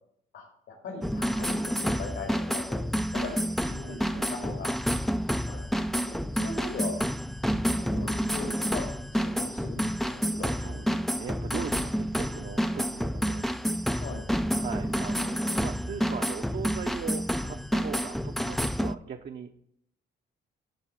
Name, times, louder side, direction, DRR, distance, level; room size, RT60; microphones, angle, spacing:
voice 1, 0.8-2.8 3.1-3.3 3.6-4.7 5.5-6.9 7.7-8.8 9.1-10.5 13.9-14.2, left 4 dB, 70° left, -1 dB, 2.4 m, -39 dB
sound 1, 1.0-19.0, equal, ahead, 0.3 m, -29 dB
voice 2, 3.2-4.4 10.6-13.5 14.5-19.6, right 7 dB, 45° right, 4 dB, 0.7 m, -40 dB
10.0 x 4.0 x 5.9 m, 0.71 s
cardioid pair, 90°, 20 cm